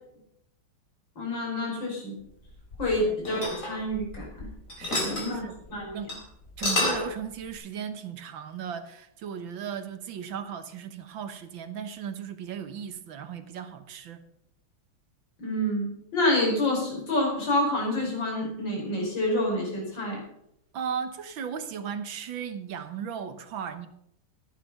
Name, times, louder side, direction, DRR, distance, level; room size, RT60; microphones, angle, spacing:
voice 1, 1.2-2.1 2.8-4.5 5.0-5.4 5.7-5.9 15.4-20.2, left 1 dB, 60° left, 5.9 m, -28 dB
sound 1, 2.4-4.4 4.7-5.3 5.7-5.8 6.1-6.2 6.5-7.1, left 2 dB, 40° left, 4.1 m, -29 dB
voice 2, 4.8-5.5 5.9-6.1 6.6-14.2 20.7-23.9, right 7 dB, 70° right, 1.9 m, -36 dB
15.0 x 10.5 x 5.5 m
omnidirectional pair, 2.2 m